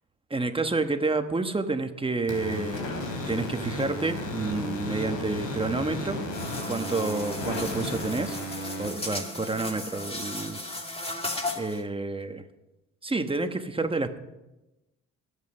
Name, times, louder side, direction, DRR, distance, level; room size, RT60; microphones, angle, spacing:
voice 1, 0.3-3.0 3.3-6.2 6.7-8.4 8.8-10.6 11.6-12.4 13.0-14.2, right 3 dB, 20° right, 8 dB, 1.2 m, -29 dB
sound 1, 2.3-8.9, left 1 dB, 80° left, 3.3 m, -34 dB
sound 2, 6.3-11.8, left 2 dB, 20° left, 2.2 m, -35 dB
20.5 x 8.3 x 5.5 m, 1.0 s
cardioid pair, 90°, 30 cm